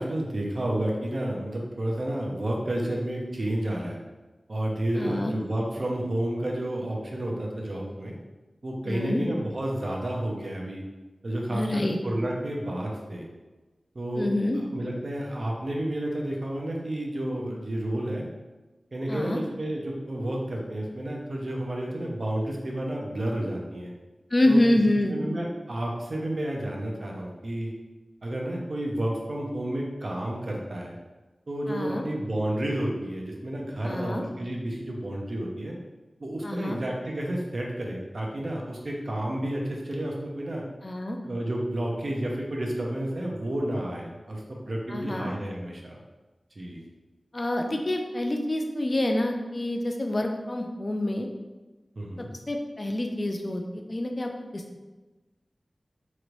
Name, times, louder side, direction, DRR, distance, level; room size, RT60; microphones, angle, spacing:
voice 1, 0.0-4.0 4.5-8.1 8.6-10.8 11.2-13.3 13.9-14.3 14.6-18.2 18.9-23.9 24.5-24.8 25.1-27.7 28.2-30.9 31.5-35.7 36.2-40.6 41.2-46.0 46.6-46.8 52.0-52.3, right 1 dB, 60° right, -1 dB, 0.6 m, -31 dB
voice 2, 4.9-5.3 8.9-9.2 11.5-12.0 14.1-14.6 19.1-19.4 24.3-25.1 31.7-32.0 33.8-34.2 36.4-36.8 40.8-41.2 44.9-45.3 47.3-51.3 52.2-54.8, left 1 dB, 40° left, 3 dB, 0.4 m, -27 dB
3.0 x 2.5 x 3.1 m, 1.2 s
wide cardioid pair, 60°, 0 cm